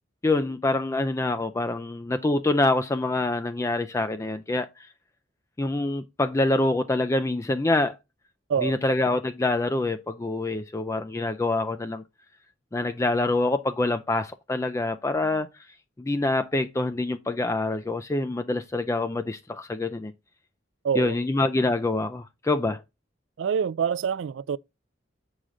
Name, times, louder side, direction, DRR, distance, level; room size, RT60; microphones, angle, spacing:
voice 1, 0.2-4.9 5.6-8.0 8.6-12.0 12.7-15.5 16.0-20.1 20.9-22.8, left 2 dB, 15° left, 0.3 m, -26 dB
voice 2, 20.8-21.2 23.4-24.6, right 7 dB, 80° right, 0.3 m, -26 dB
7.5 x 4.9 x 3.8 m
head